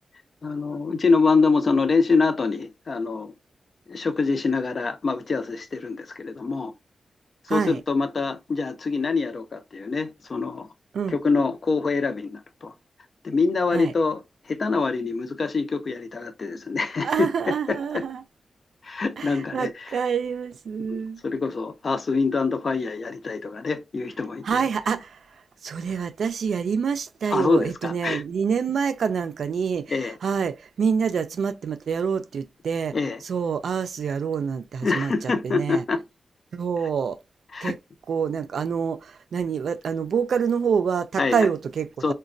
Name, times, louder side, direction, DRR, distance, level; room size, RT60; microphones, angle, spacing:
voice 1, 0.4-3.3 3.9-6.7 7.5-10.7 11.1-12.7 13.2-14.2 14.5-17.3 17.7-18.0 18.8-19.7 20.9-24.6 27.3-28.2 29.9-30.1 32.9-33.2 34.8-36.0 37.5-37.7 41.2-41.5 42.0-42.1, left 4 dB, 55° left, 0.5 m, -25 dB
voice 2, 7.5-7.8 10.9-11.2 13.7-13.9 17.0-18.2 19.2-21.2 24.4-25.2 25.6-33.0 33.2-35.8 36.5-37.2 37.6-37.8 38.1-42.1, right 6 dB, 90° right, 0.3 m, -26 dB
3.9 x 2.2 x 2.5 m
wide cardioid pair, 95°, 0 cm